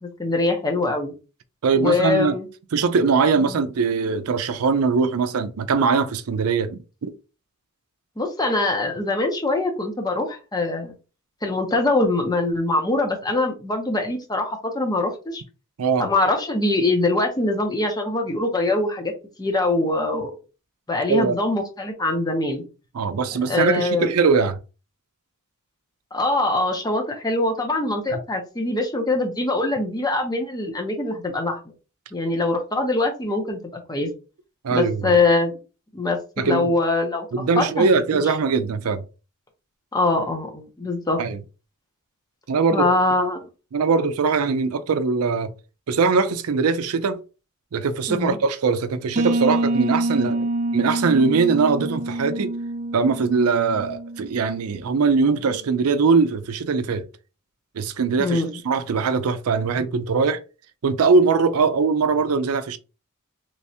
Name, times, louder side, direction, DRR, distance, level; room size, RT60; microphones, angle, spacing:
voice 1, 0.0-1.1 1.8-2.5 3.5-3.6 8.2-10.9 11.4-15.4 16.0-19.1 19.4-20.3 20.9-22.6 23.5-24.1 26.1-31.6 32.1-33.6 33.9-34.1 34.7-35.6 35.9-36.2 36.4-37.3 37.6-38.2 39.9-41.2 42.7-43.4 48.1-48.4 58.2-58.5, left 2 dB, 20° left, 0.7 m, -23 dB
voice 2, 1.6-2.4 2.7-7.1 15.8-16.1 21.1-21.3 22.9-24.6 28.1-28.2 34.6-35.1 36.4-36.7 37.3-39.0 41.2-41.4 42.5-42.9 43.7-45.5 45.9-47.2 47.7-52.5 52.9-57.1 57.8-60.4 60.8-62.8, right 4 dB, 90° right, 0.5 m, -21 dB
sound 1, 49.2-54.7, right 2 dB, 35° right, 0.4 m, -26 dB
3.4 x 3.1 x 2.7 m
head